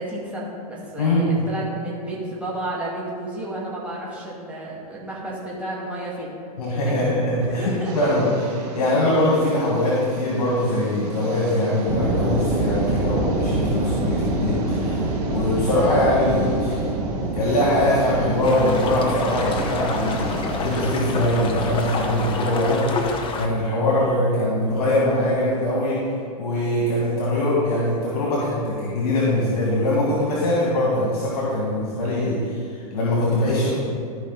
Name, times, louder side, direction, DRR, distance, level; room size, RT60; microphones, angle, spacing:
voice 1, 0.0-6.3 6.8-7.0 7.4-8.1 15.7-15.9 23.8-24.0, right 1 dB, 5° right, -7 dB, 2.1 m, -32 dB
voice 2, 1.0-1.4 6.6-8.3 8.7-16.9 17.3-22.9 23.3-26.0 26.4-33.7, left 1 dB, 70° left, -5 dB, 2.1 m, -22 dB
sound 1, 7.8-20.9, right 3 dB, 80° right, 2.3 m, -39 dB
sound 2, 11.9-21.8, right 2 dB, 25° right, 1.3 m, -26 dB
sound 3, 18.4-23.5, left 4 dB, 25° left, 0.8 m, -29 dB
12.5 x 5.2 x 4.0 m, 2.4 s
hypercardioid pair, 120°, 20 cm